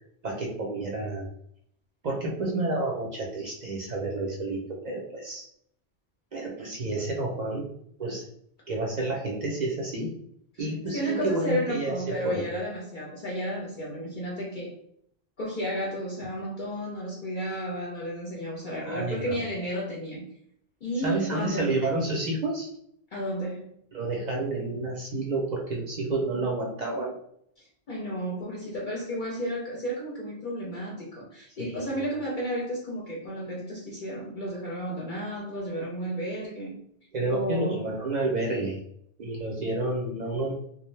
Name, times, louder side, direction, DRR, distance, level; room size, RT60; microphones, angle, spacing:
voice 1, 0.2-1.3 2.0-5.5 6.3-7.7 8.0-8.2 8.7-10.1 10.6-12.5 18.7-19.4 21.0-22.7 23.9-27.1 31.6-31.9 37.1-38.8 39.2-40.5, right 2 dB, 50° right, -1 dB, 0.6 m, -30 dB
voice 2, 10.9-14.7 15.4-20.3 20.8-21.8 23.1-23.7 27.6-36.7 37.3-37.8, equal, 55° left, -4 dB, 0.7 m, -32 dB
2.5 x 2.1 x 3.1 m, 0.68 s
omnidirectional pair, 1.1 m